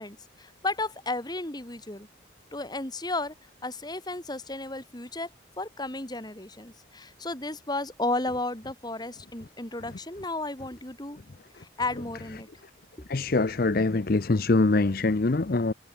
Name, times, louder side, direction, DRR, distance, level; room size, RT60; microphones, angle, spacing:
voice 1, 0.0-2.1 2.5-3.3 3.6-5.3 5.6-11.2 11.6-12.5, left 2 dB, 20° left, 2.4 m, -33 dB
voice 2, 13.1-15.7, left 3 dB, 50° left, 0.7 m, -23 dB
head